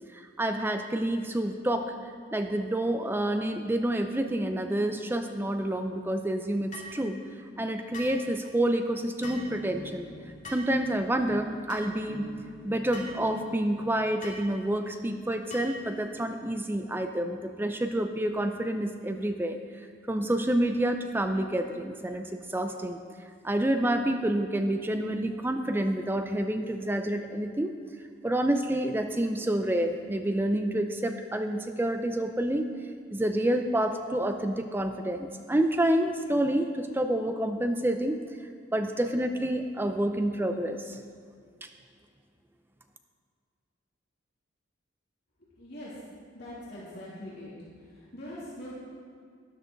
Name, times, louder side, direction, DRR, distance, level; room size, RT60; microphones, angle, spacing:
voice 1, 0.1-1.9 2.3-7.2 7.6-10.1 10.5-12.3 12.6-19.6 20.1-23.0 23.4-27.7 28.2-32.7 33.1-38.2 38.7-41.0, right 1 dB, 10° right, 6 dB, 0.5 m, -28 dB
sound 1, 6.7-7.0 7.9-8.2 9.2-9.5 10.4-10.7 11.7-11.9 12.9-13.2 14.2-14.4 15.5-15.8, equal, 40° left, 2.5 m, -41 dB
sound 2, 9.2-13.8 14.6-14.7 15.0-15.1 15.3-15.4 15.6-16.2, equal, 80° right, 2.6 m, -45 dB
voice 2, 45.5-45.9 46.3-47.5 47.8-48.7, left 1 dB, 55° left, -8 dB, 2.9 m, -42 dB
12.5 x 11.5 x 3.9 m, 2.1 s
head